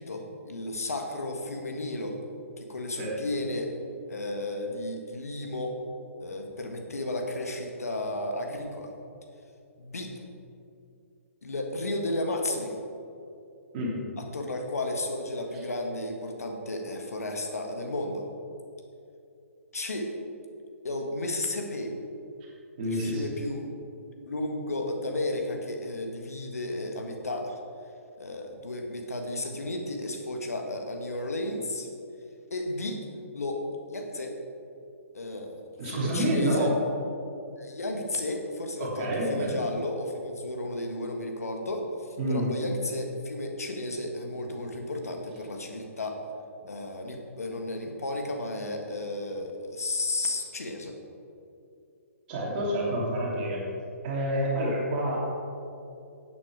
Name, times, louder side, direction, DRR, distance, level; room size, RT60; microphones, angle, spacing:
voice 1, 0.0-2.2 2.6-3.7 4.1-5.8 6.2-8.9 9.8-10.1 11.4-12.8 14.2-18.3 19.7-20.1 20.8-21.9 22.8-23.7 24.2-27.6 28.2-31.9 32.5-33.0 33.3-34.3 35.1-36.7 37.6-46.2 46.7-51.0, left 1 dB, 80° left, 3 dB, 1.7 m, -33 dB
voice 2, 22.8-23.2 35.8-36.8 38.8-39.6 42.2-42.5 44.4-44.5 52.3-53.6 54.0-55.2, right 1 dB, 40° right, -5 dB, 2.9 m, -28 dB
11.5 x 8.3 x 4.8 m, 2.6 s
hypercardioid pair, 135°, 8 cm